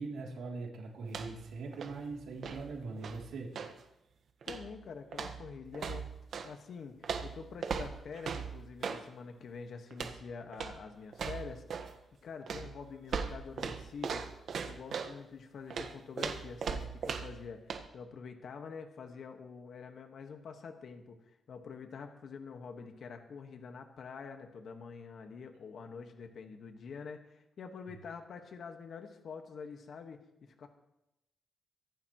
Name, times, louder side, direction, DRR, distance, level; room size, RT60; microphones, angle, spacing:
voice 1, 0.0-3.5, right 3 dB, 85° right, -1 dB, 3.1 m, -41 dB
sound 1, 1.0-1.5 1.7-3.8 4.4-4.8 5.1-6.5 7.0-9.1 9.9-10.2 10.5-10.8 11.1-12.0 12.5-15.2 15.7-17.4 17.7-17.9, right 6 dB, 65° right, 1.4 m, -39 dB
voice 2, 4.4-6.1 6.4-11.9 12.2-14.3 14.6-30.7, left 5 dB, 60° left, 5 dB, 1.5 m, -46 dB
24.0 x 11.0 x 3.1 m, 0.88 s
cardioid pair, 120°, 0 cm